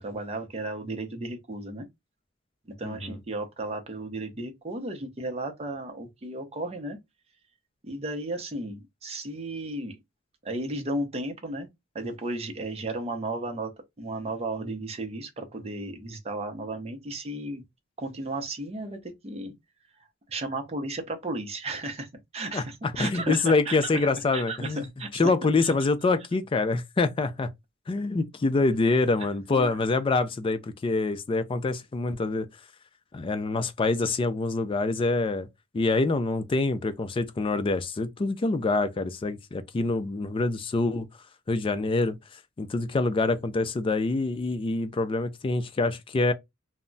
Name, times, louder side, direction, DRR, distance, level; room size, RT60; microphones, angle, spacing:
voice 1, 0.0-1.9 2.8-7.0 7.8-10.0 10.4-11.7 11.9-13.7 14.0-17.6 18.0-19.5 20.3-22.1 22.3-25.2 25.6-25.7 29.5-29.7, right 2 dB, 30° right, 0.6 m, -34 dB
voice 2, 2.8-3.2 22.5-22.6 23.0-24.8 25.1-27.5 27.9-32.5 33.1-35.5 35.7-41.1 41.5-42.2 42.6-46.3, left 3 dB, 25° left, 0.3 m, -26 dB
2.2 x 2.0 x 3.7 m
head